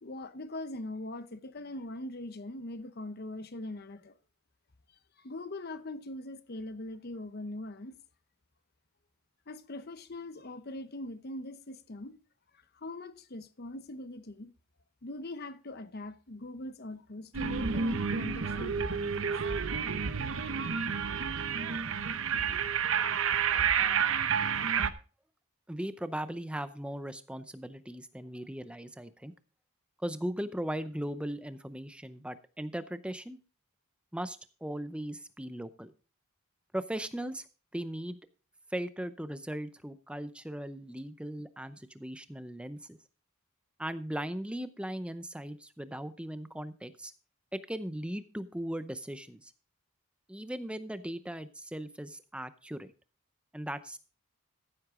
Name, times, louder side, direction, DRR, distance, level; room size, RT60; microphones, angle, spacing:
voice 1, 0.0-4.1 5.2-8.0 9.5-12.2 12.7-14.5 15.0-19.4, left 1 dB, 45° left, 0.8 m, -41 dB
sound 1, 17.3-24.9, right 6 dB, 60° right, 0.8 m, -30 dB
voice 2, 25.7-29.3 30.0-33.4 34.1-35.9 36.7-37.5 37.7-38.2 38.7-43.0 43.8-47.1 47.5-49.5 50.3-52.9 53.5-54.0, right 1 dB, 5° right, 0.6 m, -38 dB
14.5 x 7.9 x 3.7 m
head